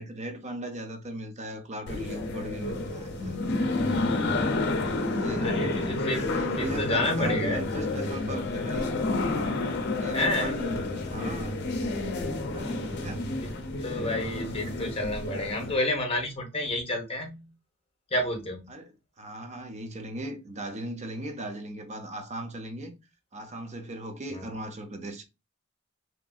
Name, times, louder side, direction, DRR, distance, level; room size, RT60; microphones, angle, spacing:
voice 1, 0.0-3.4 4.8-5.6 6.1-9.0 9.8-11.6 12.4-13.3 18.7-22.9 23.3-25.2, right 1 dB, 35° right, 0.6 m, -38 dB
sound 1, 1.9-15.8, left 2 dB, 55° left, 0.5 m, -30 dB
voice 2, 4.8-6.3 6.6-7.6 10.1-10.5 13.4-17.5 18.1-18.7 24.3-24.5, left 1 dB, 30° left, 0.8 m, -30 dB
2.9 x 2.6 x 2.3 m
head